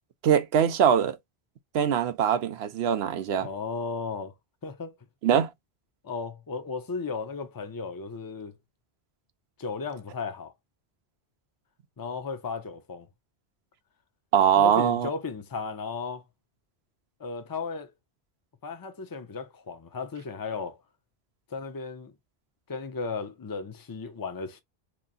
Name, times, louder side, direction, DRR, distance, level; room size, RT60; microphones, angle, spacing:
voice 1, 0.2-1.2 1.7-3.5 5.2-5.5 14.3-15.1, right 8 dB, 80° right, 0.9 m, -22 dB
voice 2, 3.4-4.3 4.6-5.0 6.0-8.6 9.6-10.5 12.0-13.1 14.6-16.2 17.2-17.9 18.6-20.8 21.5-22.1 22.7-24.6, left 4 dB, 25° left, 0.6 m, -35 dB
3.0 x 2.5 x 4.0 m
omnidirectional pair, 1.1 m